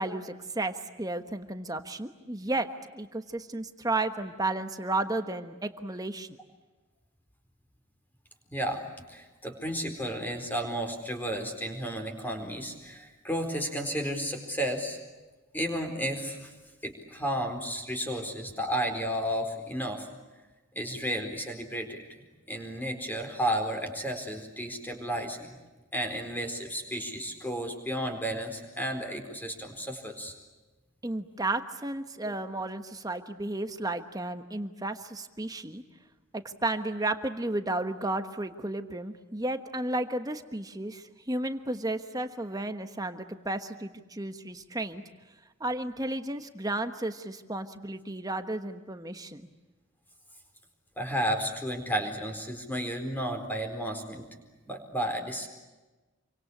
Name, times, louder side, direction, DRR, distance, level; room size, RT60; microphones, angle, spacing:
voice 1, 0.0-6.4 31.0-35.8 36.3-45.0 45.6-49.4, right 2 dB, 15° right, 8 dB, 1.2 m, -33 dB
voice 2, 8.5-8.8 9.1-15.0 15.5-16.5 16.8-20.1 20.7-22.0 22.5-25.5 25.9-30.3 32.2-32.3 51.0-54.2 54.7-55.5, equal, 10° left, 4 dB, 4.3 m, -32 dB
27.5 x 25.0 x 8.5 m, 1.2 s
head